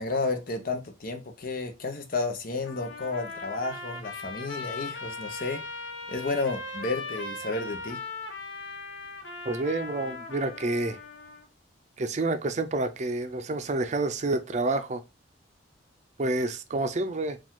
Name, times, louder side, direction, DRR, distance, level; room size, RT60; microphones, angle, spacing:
voice 1, 0.0-5.6 6.1-8.0, left 3 dB, 50° left, 0.8 m, -32 dB
Trumpet, 2.6-11.5, left 3 dB, 85° left, 1.0 m, -39 dB
voice 2, 9.5-11.0 12.0-15.0 16.2-17.4, right 2 dB, 40° right, 0.5 m, -28 dB
4.9 x 2.5 x 3.6 m
head